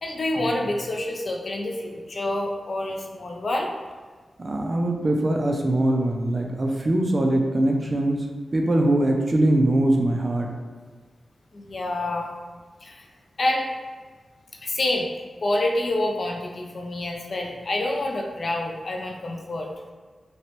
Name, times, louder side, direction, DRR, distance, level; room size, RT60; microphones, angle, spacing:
voice 1, 0.0-3.7 11.5-12.3 12.8-13.0 13.4-13.7 14.6-15.1 15.4-19.7, left 1 dB, 55° left, 1 dB, 0.4 m, -27 dB
voice 2, 4.4-8.3 8.5-10.5, right 1 dB, 35° right, 1 dB, 0.4 m, -22 dB
3.1 x 2.9 x 3.0 m, 1.4 s
wide cardioid pair, 120°, 0 cm